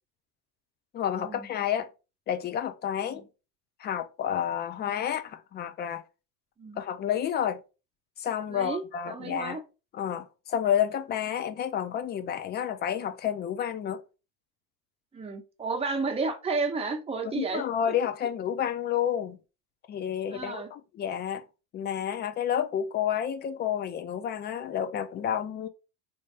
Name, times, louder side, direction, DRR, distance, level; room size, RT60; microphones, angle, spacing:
voice 1, 0.9-1.9 2.3-3.2 3.8-6.0 6.8-7.6 8.2-9.6 9.9-14.0 17.3-19.4 19.9-21.4 21.7-25.7, left 9 dB, 25° left, 0.4 m, -30 dB
voice 2, 8.5-9.6 15.1-17.6 20.3-20.7, right 4 dB, 15° right, 0.8 m, -32 dB
3.3 x 2.7 x 3.2 m
hypercardioid pair, 85°, 45 cm